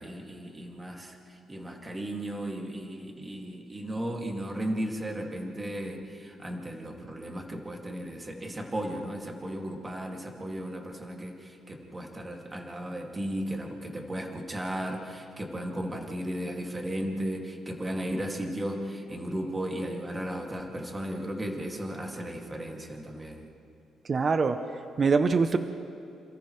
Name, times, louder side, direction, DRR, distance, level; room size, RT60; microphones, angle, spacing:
voice 1, 0.0-23.5, right 1 dB, 15° right, 1 dB, 2.3 m, -35 dB
voice 2, 24.0-25.6, right 4 dB, 35° right, 8 dB, 0.7 m, -24 dB
29.5 x 28.0 x 3.2 m, 2.6 s
cardioid pair, 140°, 0 cm